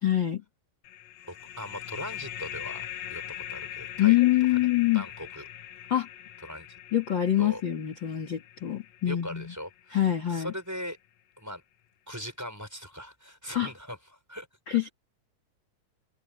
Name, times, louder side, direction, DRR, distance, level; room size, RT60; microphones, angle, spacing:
voice 1, 0.0-0.4 4.0-5.0 5.9-6.1 6.9-9.5 9.9-10.5 13.5-13.7 14.7-14.9, left 13 dB, 40° left, 2.6 m, -25 dB
sound 1, 0.9-10.1, left 11 dB, 65° left, 2.0 m, -42 dB
voice 2, 1.2-4.2 4.5-4.7 4.9-5.4 6.4-6.8 7.4-7.6 9.1-11.0 11.4-11.6 12.1-14.9, equal, 5° right, 5.6 m, -40 dB
open air
omnidirectional pair, 3.7 m